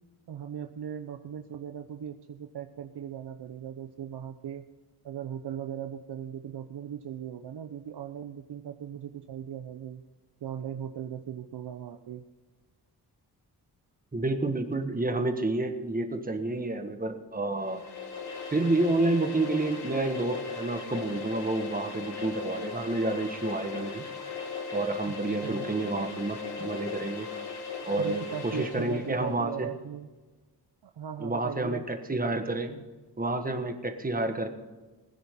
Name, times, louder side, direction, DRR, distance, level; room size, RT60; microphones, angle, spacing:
voice 1, 0.3-4.6 5.0-10.0 10.4-12.2 25.0-25.7 28.0-30.1 30.8-31.9, right 9 dB, 85° right, 6 dB, 0.9 m, -39 dB
voice 2, 14.1-17.8 18.5-24.1 24.7-27.3 27.8-29.7 31.2-32.8 33.2-34.5, right 2 dB, 20° right, 6 dB, 1.4 m, -29 dB
sound 1, 17.6-29.2, left 5 dB, 70° left, 1.9 m, -38 dB
20.0 x 10.0 x 3.7 m, 1.3 s
wide cardioid pair, 140°, 39 cm